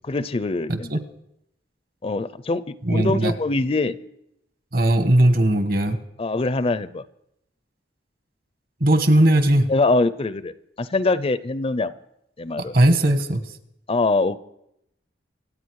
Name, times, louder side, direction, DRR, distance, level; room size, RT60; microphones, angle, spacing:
voice 1, 0.0-0.9 2.0-4.0 6.2-7.1 9.7-11.9 12.4-12.7 13.9-14.4, left 3 dB, 30° left, 15 dB, 0.5 m, -23 dB
voice 2, 0.7-1.0 2.8-3.3 4.7-6.0 8.8-9.7 12.6-13.4, right 1 dB, 50° right, 9 dB, 1.4 m, -18 dB
25.5 x 9.0 x 4.7 m, 0.79 s
head